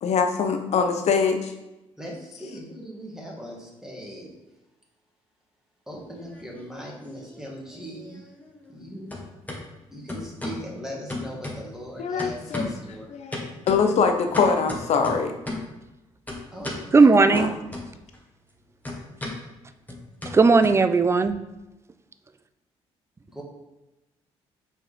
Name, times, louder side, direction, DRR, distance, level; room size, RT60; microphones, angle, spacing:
voice 1, 0.0-1.5 12.0-12.7 13.1-15.3 17.3-17.5, left 5 dB, 60° left, 6 dB, 0.8 m, -23 dB
voice 2, 2.0-4.3 5.9-8.3 8.7-9.3 9.9-13.1 16.5-17.2 23.3-23.4, equal, 5° right, -3 dB, 2.0 m, -39 dB
sound 1, 6.0-6.9 7.2-8.8 9.1-9.6 10.1-10.7 11.1-11.9 12.2-12.9 13.3-15.8 16.3-16.9 17.3-18.2 18.4-21.3, left 2 dB, 15° left, 1.6 m, -35 dB
voice 3, 16.9-17.5 20.3-21.4, right 4 dB, 20° right, 11 dB, 0.5 m, -16 dB
5.7 x 4.6 x 3.6 m, 0.98 s
supercardioid pair, 65°, 12 cm